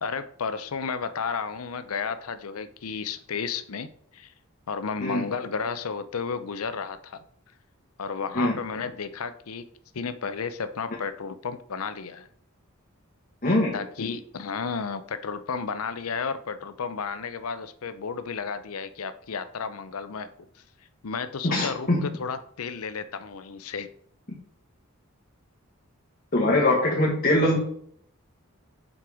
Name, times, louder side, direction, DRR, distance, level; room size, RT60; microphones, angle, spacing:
voice 1, 0.0-4.3 4.7-7.2 8.0-9.7 9.9-12.3 13.7-20.3 21.0-23.9, left 5 dB, 90° left, 11 dB, 0.6 m, -32 dB
voice 2, 13.4-13.7 21.4-22.0 26.3-27.6, left 1 dB, 40° left, -2 dB, 1.5 m, -22 dB
7.6 x 5.3 x 4.8 m, 0.64 s
head